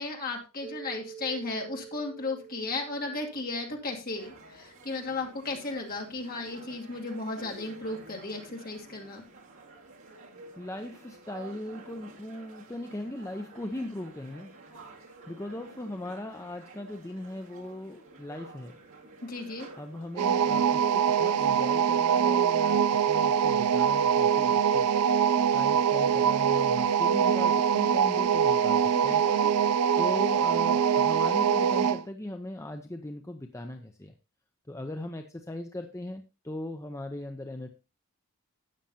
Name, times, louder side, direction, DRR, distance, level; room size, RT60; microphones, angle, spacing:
voice 1, 0.0-9.2 19.2-19.7 28.9-29.5, left 3 dB, 40° left, 0 dB, 2.4 m, -35 dB
Mallet percussion, 0.6-4.8, right 8 dB, 25° right, 6.9 m, -48 dB
sound 1, 4.1-21.8, right 3 dB, 60° right, 2.2 m, -51 dB
voice 2, 10.6-14.5 15.3-18.8 19.8-24.9 25.5-29.2 29.9-34.1 34.7-37.7, left 1 dB, 15° left, 6 dB, 0.6 m, -39 dB
sound 2, 20.2-32.0, right 8 dB, 85° right, 0.4 m, -24 dB
13.0 x 8.8 x 2.8 m, 0.28 s
head